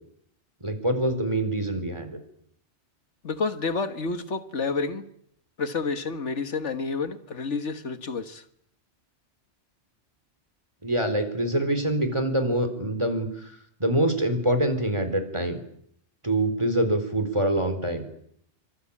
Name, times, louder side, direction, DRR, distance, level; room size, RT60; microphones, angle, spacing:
voice 1, 0.6-2.2 10.8-13.3 13.8-15.6 16.2-18.0, right 1 dB, 25° right, 7 dB, 4.2 m, -25 dB
voice 2, 3.2-5.1 5.6-8.4, left 4 dB, 80° left, 10 dB, 1.9 m, -29 dB
26.0 x 25.5 x 8.7 m, 0.70 s
omnidirectional pair, 1.2 m